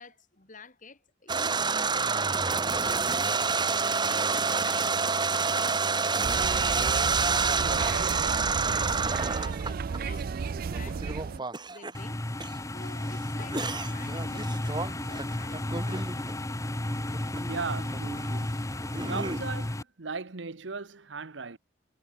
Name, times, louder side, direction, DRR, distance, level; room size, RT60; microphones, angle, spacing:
voice 1, 0.0-3.7 4.1-7.3 7.8-8.1 8.5-10.3 10.7-12.2 12.7-16.0, left 3 dB, 45° left, 4.2 m, -49 dB
sound 1, 1.3-10.2 10.7-11.9 12.4-12.5 13.4-16.3 16.9-17.5 17.8-19.4, right 4 dB, 25° right, 1.7 m, -28 dB
sound 2, 6.2-11.4, right 5 dB, 55° right, 0.4 m, -33 dB
sound 3, 11.9-19.8, left 1 dB, 15° left, 1.0 m, -33 dB
voice 2, 17.5-18.6 19.1-21.6, right 4 dB, 90° right, 1.1 m, -37 dB
head